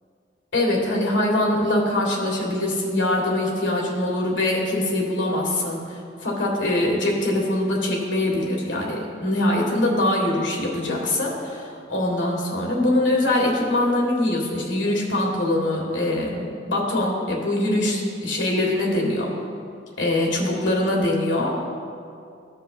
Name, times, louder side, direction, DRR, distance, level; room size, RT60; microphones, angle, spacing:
voice 1, 0.5-19.3 20.0-21.6, left 1 dB, 85° left, -2 dB, 1.7 m, -23 dB
15.5 x 5.5 x 2.5 m, 2.3 s
head